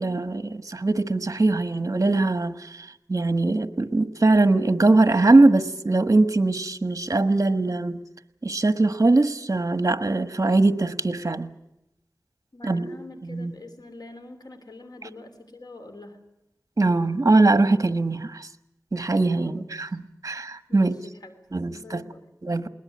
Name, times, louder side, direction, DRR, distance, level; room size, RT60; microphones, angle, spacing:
voice 1, 0.0-2.6 3.1-8.0 8.4-11.5 12.6-13.5 16.8-18.4 18.9-20.9 21.5-22.0 22.4-22.7, right 2 dB, 50° right, 1.3 m, -21 dB
voice 2, 12.5-16.2 19.4-19.7 20.7-21.4 21.7-22.3, left 2 dB, 75° left, 3.3 m, -44 dB
21.0 x 19.5 x 9.4 m
wide cardioid pair, 50°, 7 cm